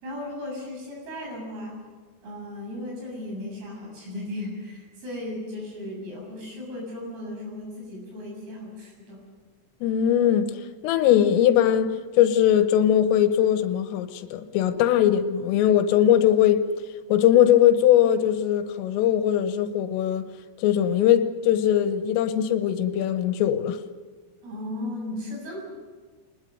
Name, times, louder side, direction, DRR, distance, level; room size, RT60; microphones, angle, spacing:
voice 1, 0.0-1.8 2.2-9.2 24.4-25.6, left 1 dB, 80° right, 10.0 m, -36 dB
voice 2, 9.8-10.6 10.8-16.7 17.1-20.3 20.6-23.8, left 10 dB, 85° left, 3.5 m, -20 dB
24.5 x 20.5 x 6.8 m
omnidirectional pair, 5.9 m